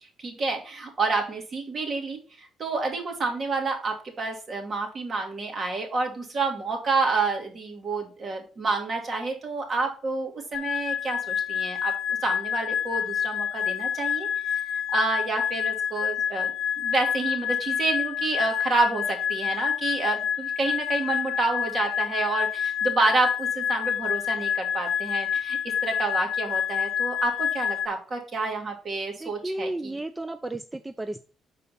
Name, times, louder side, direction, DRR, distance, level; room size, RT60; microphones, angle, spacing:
voice 1, 0.2-11.9 12.2-14.6 14.9-16.5 16.8-30.0, right 3 dB, 45° right, 2 dB, 2.0 m, -29 dB
sound 1, 10.5-27.9, left 8 dB, 65° left, 0.6 m, -28 dB
voice 2, 29.2-31.2, right 1 dB, 15° right, 10 dB, 0.4 m, -33 dB
5.5 x 4.1 x 5.7 m, 0.37 s
cardioid pair, 90°, 0 cm